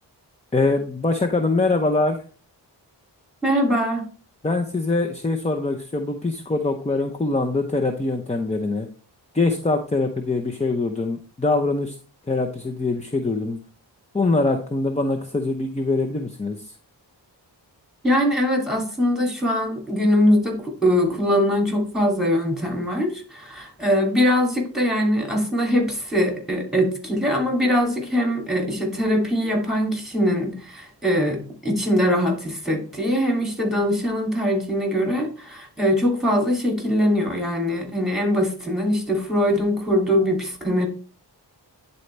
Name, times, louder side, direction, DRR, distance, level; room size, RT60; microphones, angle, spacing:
voice 1, 0.5-2.2 4.4-8.9 9.3-12.0 12.3-13.6 14.1-16.7, left 3 dB, 15° left, 4 dB, 0.7 m, -23 dB
voice 2, 3.4-4.0 18.0-40.9, equal, ahead, 1 dB, 2.7 m, -22 dB
10.0 x 4.1 x 3.3 m, 0.40 s
wide cardioid pair, 65°, 43 cm